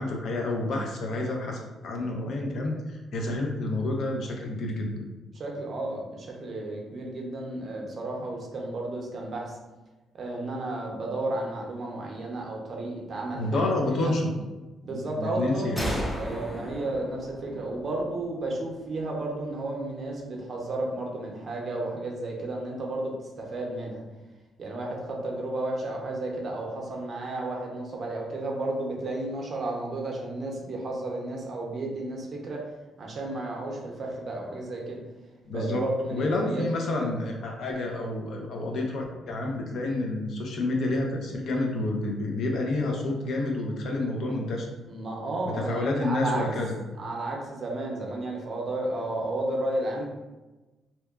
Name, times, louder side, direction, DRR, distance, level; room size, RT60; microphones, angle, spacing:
voice 1, 0.0-5.0 13.3-14.3 14.9-15.9 35.5-35.8 36.1-44.7 45.4-46.8, left 2 dB, 65° left, 0 dB, 0.5 m, -29 dB
voice 2, 5.3-9.5 10.1-13.7 14.0-14.2 14.8-24.0 24.6-32.7 33.0-35.0 35.5-36.6 44.8-46.5 47.0-50.1, right 2 dB, 50° right, -1 dB, 0.6 m, -32 dB
sound 1, 15.8-19.3, equal, 5° left, 0.6 m, -36 dB
2.8 x 2.2 x 2.3 m, 1.1 s
cardioid pair, 90°, 0 cm